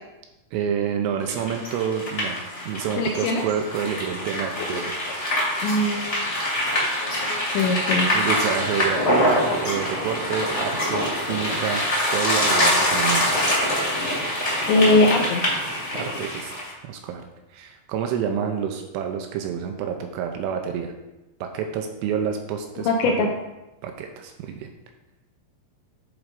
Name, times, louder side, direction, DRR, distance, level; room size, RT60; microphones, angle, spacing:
voice 1, 0.5-2.4 2.7-4.9 8.0-13.4 15.9-16.5 16.8-17.2 17.5-20.9 21.4-23.3 23.8-24.7, right 7 dB, 85° right, 4 dB, 2.9 m, -28 dB
Bike On Gravel OS, 1.2-16.7, left 1 dB, 40° left, 0.9 m, -24 dB
voice 2, 3.0-3.4 5.6-6.2 7.0-8.1 14.6-15.4 22.9-23.3, left 2 dB, 85° left, 2 dB, 2.6 m, -21 dB
10.5 x 3.6 x 5.2 m, 1.0 s
omnidirectional pair, 6.0 m